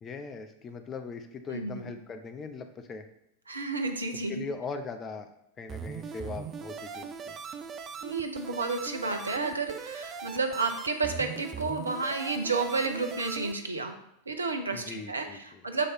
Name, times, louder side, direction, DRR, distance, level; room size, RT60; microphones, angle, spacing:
voice 1, 0.0-3.0 4.3-5.3 5.6-7.3 14.7-15.6, left 4 dB, 25° left, 7 dB, 0.6 m, -40 dB
voice 2, 1.5-1.9 3.5-4.4 8.0-14.0 14.3-15.9, right 3 dB, 75° right, 6 dB, 0.7 m, -31 dB
sound 1, 5.7-13.5, right 6 dB, 25° right, 0.5 m, -40 dB
7.4 x 3.2 x 4.3 m, 0.80 s
figure-of-eight pair, 90°, 0 cm